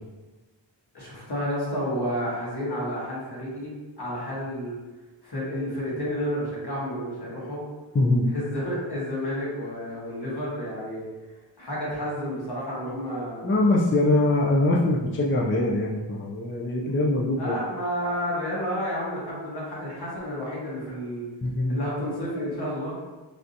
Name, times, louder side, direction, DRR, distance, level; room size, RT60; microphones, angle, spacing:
voice 1, 0.9-4.8 5.2-7.6 8.3-11.1 11.6-13.5 17.4-21.2 21.7-23.0, equal, 55° left, -7 dB, 1.3 m, -31 dB
voice 2, 7.9-8.3 13.4-17.6 21.4-21.8, left 2 dB, 30° left, -3 dB, 0.3 m, -23 dB
3.3 x 2.6 x 2.5 m, 1.2 s
wide cardioid pair, 80°, 46 cm